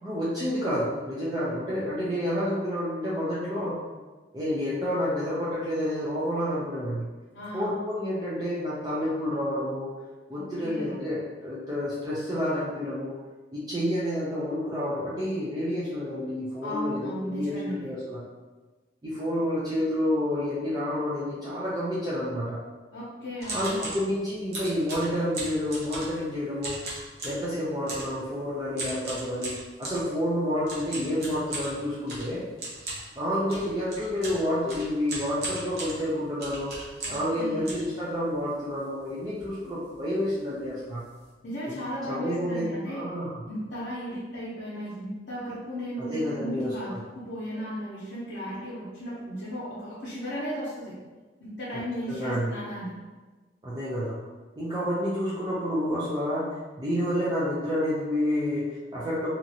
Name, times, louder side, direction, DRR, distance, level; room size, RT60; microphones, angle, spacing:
voice 1, 0.0-3.8 4.3-7.1 7.5-9.9 10.3-13.2 13.5-18.2 19.0-22.6 23.5-26.8 27.2-32.4 33.2-36.7 37.1-41.0 41.7-41.8 42.1-43.3 46.0-46.9 52.1-52.5 53.6-54.2 54.6-59.3, equal, 20° right, -9 dB, 0.4 m, -29 dB
voice 2, 7.3-7.7 10.3-11.0 16.6-17.9 22.9-23.9 37.0-37.7 41.4-43.0 43.5-46.9 47.1-50.9 51.4-52.9, equal, 70° left, -10 dB, 0.7 m, -35 dB
sound 1, 23.4-24.0 24.5-26.3 26.6-27.4 27.9-28.2 28.8-30.0 30.6-37.3 37.6-38.5 39.0-39.1 39.3-39.6 39.8-40.0 40.6-40.7 41.0-41.2, right 2 dB, 55° right, 0.8 m, -37 dB
2.8 x 2.5 x 2.7 m, 1.3 s
head